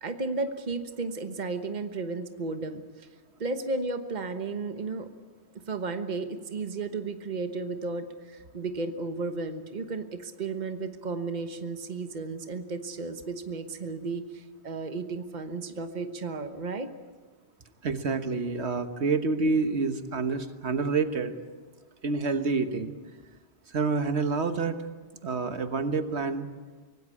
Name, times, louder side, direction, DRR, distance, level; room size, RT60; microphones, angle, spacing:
voice 1, 0.0-3.1 3.4-5.1 5.7-16.9, right 3 dB, 40° right, 8 dB, 1.3 m, -34 dB
voice 2, 17.8-21.3 22.0-22.9 23.7-24.8 25.2-26.5, right 4 dB, 75° right, 8 dB, 1.5 m, -28 dB
25.0 x 18.5 x 8.5 m, 1.3 s
omnidirectional pair, 1.1 m